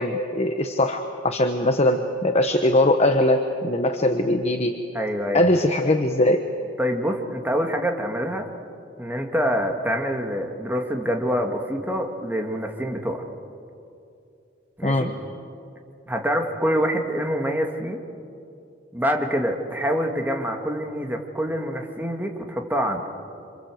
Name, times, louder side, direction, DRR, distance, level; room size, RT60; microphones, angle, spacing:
voice 1, 0.0-4.8 5.3-6.4 14.8-15.1, left 1 dB, 35° left, 6 dB, 1.1 m, -21 dB
voice 2, 4.9-5.4 6.8-8.5 9.0-13.2 14.8-15.1 16.1-18.0 18.9-23.0, equal, 10° right, 2 dB, 2.1 m, -26 dB
28.0 x 26.0 x 7.8 m, 2.5 s
head